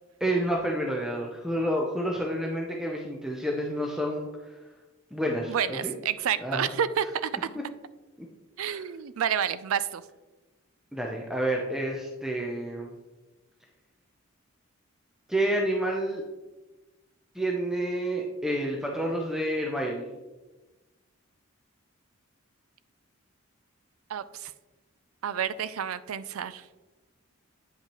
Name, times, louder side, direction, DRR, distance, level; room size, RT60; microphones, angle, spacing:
voice 1, 0.2-4.3 5.1-5.9 6.4-6.7 8.6-8.8 10.9-12.9 15.3-16.2 17.3-20.1, right 1 dB, ahead, 0 dB, 0.5 m, -29 dB
voice 2, 5.5-7.3 8.6-10.0 24.1-24.5 25.2-26.7, right 8 dB, 80° right, 15 dB, 0.4 m, -29 dB
8.6 x 5.6 x 3.0 m, 1.1 s
head